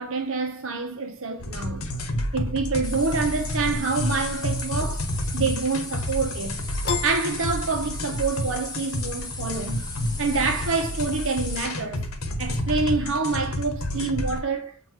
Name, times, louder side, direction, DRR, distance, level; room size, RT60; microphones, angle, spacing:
voice 1, 0.0-1.9 2.3-6.6 7.0-9.8 10.2-12.0 12.4-14.9, right 4 dB, 70° right, 1.0 m, -27 dB
sound 1, 1.4-14.4, left 1 dB, 80° left, 0.9 m, -30 dB
sound 2, 2.8-11.6, left 3 dB, 20° left, 1.2 m, -38 dB
Piano, 6.8-8.4, left 6 dB, 50° left, 0.9 m, -32 dB
7.6 x 2.7 x 4.6 m
head